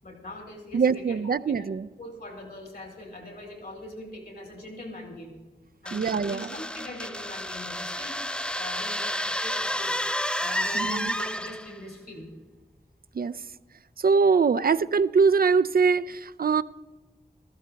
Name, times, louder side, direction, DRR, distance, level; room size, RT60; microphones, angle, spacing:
voice 1, 0.0-1.7 2.0-5.4 5.8-10.0 10.4-12.3, left 1 dB, 65° left, 4.5 m, -42 dB
voice 2, 0.7-1.9 5.9-6.5 10.8-11.1 13.1-13.4 14.0-16.6, right 5 dB, 60° right, 0.4 m, -23 dB
sound 1, 5.9-11.8, equal, 5° left, 0.4 m, -31 dB
15.5 x 14.0 x 4.0 m
wide cardioid pair, 75°, 17 cm